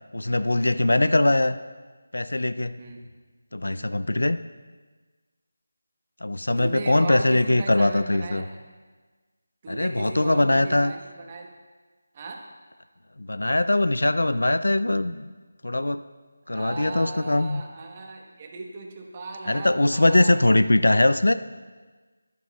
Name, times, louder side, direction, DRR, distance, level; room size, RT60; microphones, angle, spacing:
voice 1, 0.1-1.6 2.1-2.7 3.5-4.4 6.2-8.5 9.7-10.9 13.2-15.3 15.6-16.0 16.5-17.6 19.5-21.3, left 2 dB, 90° left, 12 dB, 0.3 m, -21 dB
voice 2, 2.8-3.1 6.6-8.6 9.6-11.5 12.1-12.4 16.5-20.7, right 3 dB, 25° right, 1 dB, 1.0 m, -37 dB
11.5 x 11.0 x 2.3 m, 1.4 s
figure-of-eight pair, 170°, 0 cm